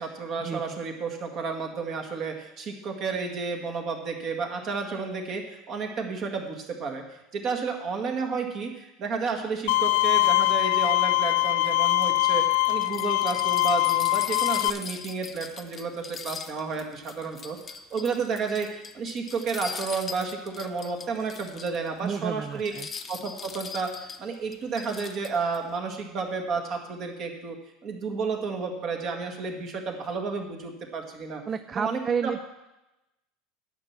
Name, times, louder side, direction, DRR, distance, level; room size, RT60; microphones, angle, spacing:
voice 1, 0.0-7.0 7.3-17.6 17.9-22.7 23.1-27.6 27.8-31.4 31.7-32.4, right 4 dB, 45° right, 4 dB, 1.8 m, -31 dB
Bowed string instrument, 9.7-14.7, left 20 dB, 80° left, 0.4 m, -23 dB
sound 1, 12.0-21.9 22.2-22.3 22.6-25.6, left 6 dB, 25° left, 0.7 m, -40 dB
voice 2, 22.0-22.9 31.5-32.4, right 6 dB, 25° right, 13 dB, 0.3 m, -30 dB
9.5 x 5.9 x 7.4 m, 0.96 s
supercardioid pair, 120°, 0 cm